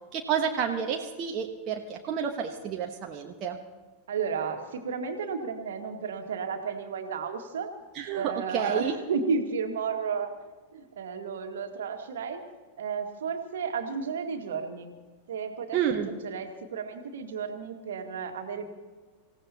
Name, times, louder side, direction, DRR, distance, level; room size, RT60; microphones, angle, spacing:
voice 1, 0.1-3.6 7.9-8.9 15.7-16.1, right 8 dB, 35° right, 2 dB, 1.2 m, -30 dB
voice 2, 4.1-7.7 8.1-10.3 10.7-12.4 12.8-15.0 15.3-18.7, right 5 dB, 60° right, 4 dB, 1.9 m, -33 dB
26.0 x 16.5 x 2.9 m, 1.4 s
figure-of-eight pair, 90°, 0 cm